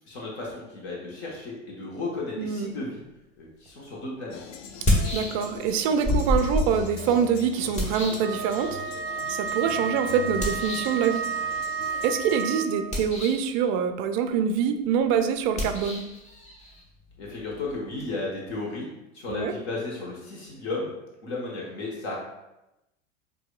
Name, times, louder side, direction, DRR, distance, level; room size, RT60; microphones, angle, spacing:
voice 1, 0.0-3.0 3.4-4.4 17.2-18.9 19.1-20.9 21.2-22.2, left 2 dB, 55° left, -4 dB, 1.4 m, -34 dB
voice 2, 2.4-2.8 5.1-8.8 9.3-11.3 12.0-16.0 19.3-19.5, right 7 dB, 30° right, 7 dB, 0.4 m, -25 dB
sound 1, 3.7-3.8 4.7-5.7 6.0-8.9 10.4-11.0 12.8-13.5 15.5-18.1, left 1 dB, 20° left, 1.0 m, -29 dB
sound 2, 4.3-12.4, left 7 dB, 40° left, 0.5 m, -42 dB
Wind instrument woodwind instrument, 8.2-13.1, right 6 dB, 5° right, 0.8 m, -32 dB
7.9 x 2.8 x 2.4 m, 0.92 s
figure-of-eight pair, 85°, 39 cm